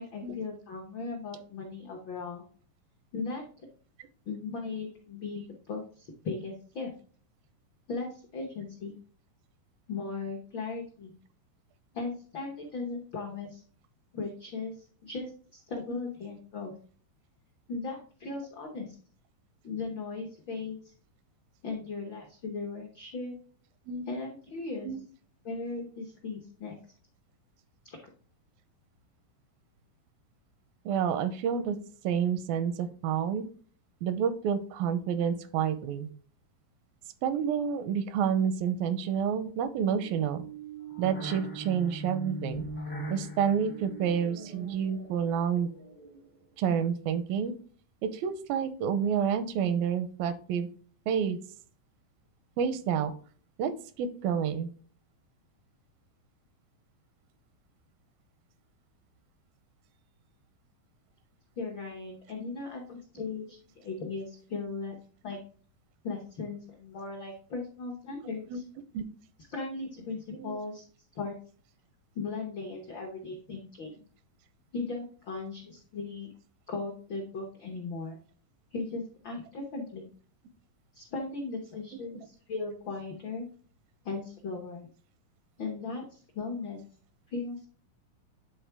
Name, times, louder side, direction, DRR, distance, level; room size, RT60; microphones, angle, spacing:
voice 1, 0.0-2.4 3.1-3.7 4.3-6.9 7.9-8.9 9.9-11.1 11.9-13.6 14.1-16.7 17.7-19.0 19.6-20.9 21.6-23.3 24.0-24.9 25.4-26.8 27.8-28.0 61.6-65.0 65.2-65.4 66.0-68.6 69.5-70.8 71.1-71.4 72.1-73.9 74.7-76.3 76.7-78.2 78.7-80.1 80.9-83.5 84.0-84.9 85.6-86.8 87.3-87.7, left 4 dB, 80° left, 1 dB, 1.0 m, -37 dB
voice 2, 30.9-31.8 32.0-33.4 34.0-36.1 37.2-40.4 41.0-42.6 43.1-45.7 46.6-47.5 48.0-50.7 51.1-51.4 52.6-53.1 53.6-54.7 68.5-68.6 68.9-69.0 70.3-70.6 81.9-82.0, right 7 dB, 90° right, 12 dB, 2.5 m, -29 dB
sound 1, 40.0-46.4, right 1 dB, 35° left, 0.5 m, -41 dB
9.6 x 3.7 x 3.4 m, 0.44 s
omnidirectional pair, 4.0 m